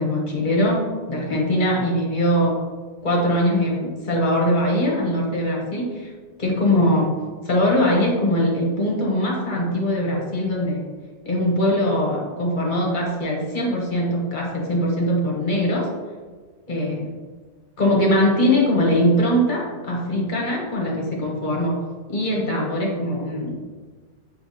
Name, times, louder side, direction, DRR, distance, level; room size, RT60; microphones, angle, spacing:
voice 1, 0.0-2.6 3.0-6.1 6.4-7.2 7.4-10.8 11.2-15.9 16.7-17.1 17.8-21.8 22.1-23.5, left 1 dB, 45° left, -2 dB, 1.1 m, -21 dB
6.5 x 2.8 x 2.7 m, 1.4 s
omnidirectional pair, 1.2 m